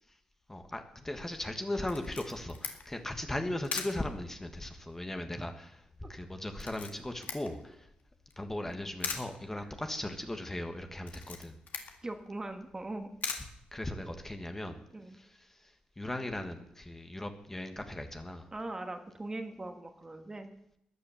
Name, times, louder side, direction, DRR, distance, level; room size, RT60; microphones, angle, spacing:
voice 1, 0.5-5.7 6.1-7.9 8.4-11.6 13.7-14.8 15.2-18.5, left 1 dB, 10° left, 6 dB, 1.3 m, -38 dB
Camera, 1.9-14.4, left 5 dB, 60° left, 2.0 m, -44 dB
voice 2, 12.0-13.1 14.9-15.2 18.5-20.5, right 2 dB, 20° right, 6 dB, 1.4 m, -40 dB
14.5 x 9.9 x 7.0 m, 0.77 s
cardioid pair, 120°, 3 cm